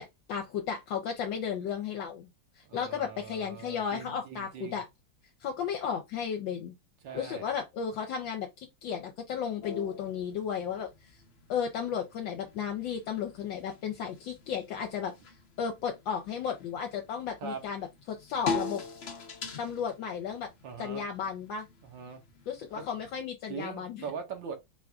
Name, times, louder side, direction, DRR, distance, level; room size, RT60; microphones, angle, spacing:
voice 1, 0.0-2.3 2.6-4.8 5.4-6.7 7.1-10.9 11.5-15.1 15.6-18.8 19.6-20.5 20.8-21.7 22.5-24.1, left 7 dB, 75° left, 1.4 m, -34 dB
voice 2, 2.6-4.8 7.0-7.5 17.4-17.6 20.6-21.0 21.8-22.2 22.7-22.8 23.5-24.6, right 6 dB, 70° right, 1.8 m, -41 dB
sound 1, 9.6-23.2, left 5 dB, 55° left, 0.7 m, -42 dB
4.6 x 2.5 x 3.4 m
omnidirectional pair, 2.2 m